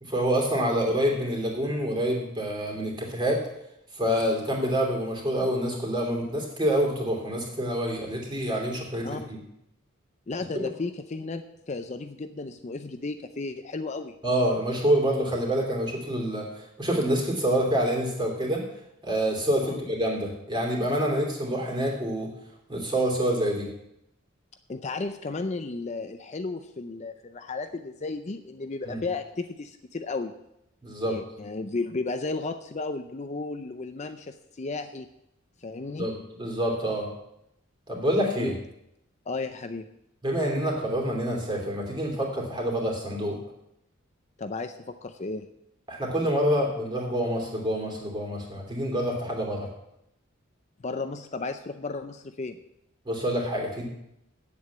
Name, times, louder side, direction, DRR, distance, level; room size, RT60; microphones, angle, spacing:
voice 1, 0.0-3.4 3.9-9.4 10.5-10.6 14.2-18.6 19.0-22.3 22.7-23.7 28.9-29.0 30.8-31.1 36.0-36.1 36.4-37.1 37.9-38.5 40.2-43.4 45.9-49.7 53.0-53.9, equal, 20° right, 0 dB, 2.8 m, -27 dB
voice 2, 9.0-9.3 10.3-14.1 19.6-19.8 24.7-30.3 31.1-35.1 35.6-36.1 38.4-38.6 39.3-39.9 44.4-45.5 50.8-52.6, left 3 dB, 35° left, 8 dB, 0.5 m, -34 dB
8.6 x 7.9 x 8.4 m, 0.82 s
head